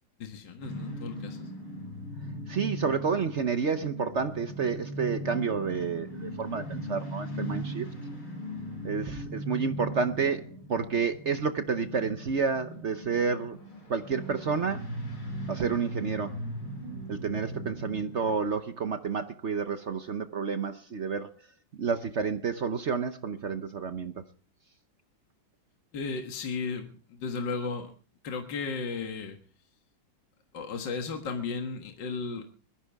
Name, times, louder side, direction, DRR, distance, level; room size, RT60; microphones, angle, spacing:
voice 1, 0.2-1.5 25.9-27.9 28.2-29.4 30.5-32.4, left 4 dB, 65° left, 2.2 m, -35 dB
sound 1, 0.6-18.3, equal, 85° left, 5.9 m, -39 dB
voice 2, 2.5-7.9 8.8-13.6 13.9-14.9 15.5-16.4 17.1-21.3 21.8-24.2, right 5 dB, 55° right, 0.8 m, -30 dB
21.5 x 14.0 x 3.5 m
omnidirectional pair, 2.2 m